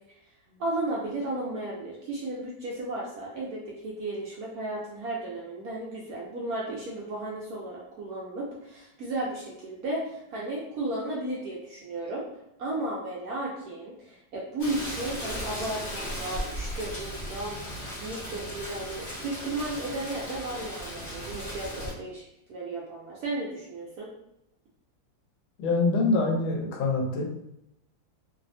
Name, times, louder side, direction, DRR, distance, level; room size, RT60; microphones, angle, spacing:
voice 1, 0.6-12.2 12.6-22.2 22.5-24.1, right 2 dB, 70° right, -4 dB, 0.9 m, -34 dB
Rain, 14.6-21.9, equal, 45° left, 0.9 m, -37 dB
voice 2, 25.6-27.2, left 3 dB, 90° left, 0 dB, 1.4 m, -25 dB
3.3 x 2.0 x 2.5 m, 0.82 s
omnidirectional pair, 2.1 m